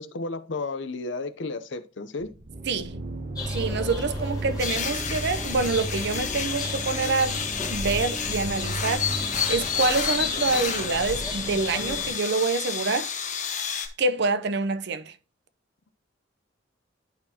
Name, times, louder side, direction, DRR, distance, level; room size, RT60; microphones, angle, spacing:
voice 1, 0.0-2.3, left 3 dB, 70° left, 0.7 m, -33 dB
sound 1, 2.2-10.0, right 2 dB, 40° right, 0.9 m, -35 dB
sound 2, 3.4-12.1, left 5 dB, 20° left, 2.1 m, -33 dB
voice 2, 3.5-7.4 7.7-13.1 14.0-15.1, right 4 dB, 60° right, 0.7 m, -26 dB
sound 3, 4.6-13.9, left 7 dB, 40° left, 1.2 m, -32 dB
11.5 x 4.3 x 2.8 m
head